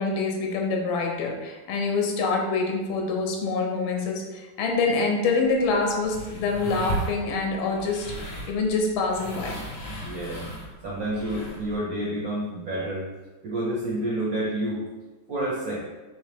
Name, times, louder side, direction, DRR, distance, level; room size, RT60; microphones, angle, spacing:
voice 1, 0.0-9.6, left 3 dB, 70° left, 1 dB, 1.4 m, -26 dB
sound 1, 5.4-11.8, equal, 55° left, 1.1 m, -36 dB
voice 2, 10.0-10.4 10.8-13.1 13.4-14.8 15.3-15.8, right 1 dB, 70° right, -5 dB, 0.8 m, -29 dB
3.9 x 3.1 x 3.3 m, 1.2 s
omnidirectional pair, 2.4 m